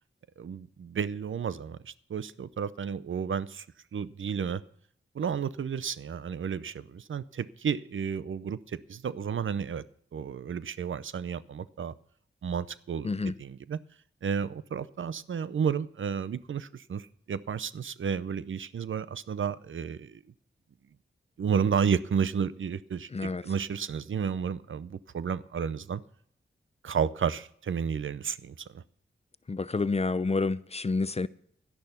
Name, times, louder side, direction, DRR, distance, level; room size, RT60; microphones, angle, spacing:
voice 1, 0.4-3.7 3.9-4.6 5.1-9.8 10.1-11.9 12.4-13.1 13.4-13.8 14.2-20.2 21.4-26.0 26.8-28.8, right 7 dB, 70° right, 0.6 m, -32 dB
voice 2, 13.0-13.3 23.1-23.4 29.5-31.3, left 3 dB, 30° left, 0.6 m, -29 dB
11.5 x 10.5 x 5.7 m
cardioid pair, 55°, 21 cm